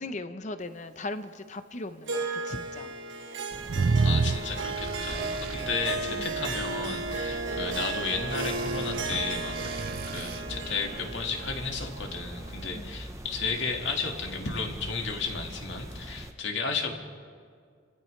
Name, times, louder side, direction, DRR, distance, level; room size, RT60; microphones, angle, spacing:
voice 1, 0.0-2.9 6.2-6.3 12.7-12.9, left 2 dB, 40° left, 10 dB, 0.7 m, -38 dB
Harp, 2.1-12.6, right 3 dB, 75° right, 1.4 m, -35 dB
sound 1, 3.5-16.3, right 1 dB, 15° right, 0.8 m, -42 dB
sound 2, 3.7-5.6 8.4-10.4, right 4 dB, 50° right, 0.4 m, -29 dB
voice 2, 4.0-16.9, left 4 dB, 70° left, 2 dB, 1.8 m, -33 dB
30.0 x 15.0 x 3.2 m, 2.1 s
head